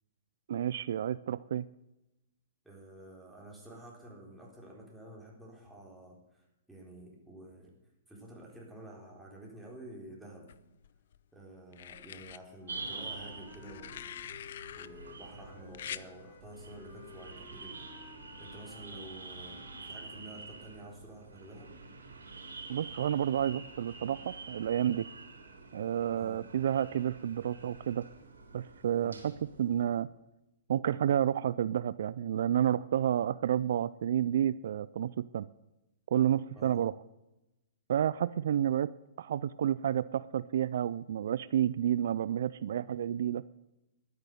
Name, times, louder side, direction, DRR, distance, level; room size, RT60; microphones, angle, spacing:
voice 1, 0.5-1.7 22.7-25.1 25.7-28.1 28.5-29.3 29.6-30.1 30.7-35.5 36.1-36.9 37.9-38.9 39.2-43.4, right 10 dB, 65° right, 18 dB, 0.4 m, -30 dB
voice 2, 2.6-7.7 8.1-10.5 11.3-17.9 18.4-21.7 26.1-26.4 29.0-29.2 36.6-36.8, right 1 dB, 5° right, -2 dB, 4.0 m, -50 dB
sound 1, 10.5-11.2 11.7-12.4 13.5-14.9 15.7-16.1 17.4-17.6, left 10 dB, 65° left, 0.5 m, -44 dB
Wind instrument woodwind instrument, 12.6-20.3, left 7 dB, 35° left, 1.4 m, -55 dB
sound 2, 12.7-29.8, right 4 dB, 85° right, 3.8 m, -47 dB
12.0 x 9.6 x 6.8 m, 0.94 s
hypercardioid pair, 135°, 0 cm